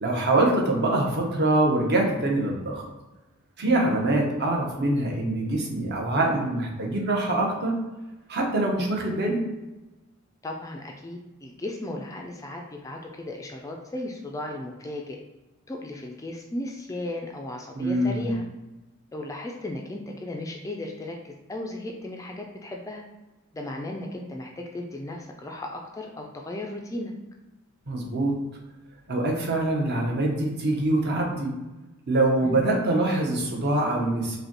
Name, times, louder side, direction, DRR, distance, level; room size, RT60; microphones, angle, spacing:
voice 1, 0.0-2.8 3.6-7.8 8.3-9.4 17.8-18.3 27.9-28.3 29.1-31.6 32.1-34.4, right 2 dB, 50° right, 0 dB, 0.8 m, -24 dB
voice 2, 10.4-15.2 15.7-18.4 19.1-23.0 23.5-27.1 32.4-32.6, left 1 dB, 15° left, 1 dB, 0.3 m, -35 dB
5.0 x 2.2 x 2.9 m, 1.1 s
head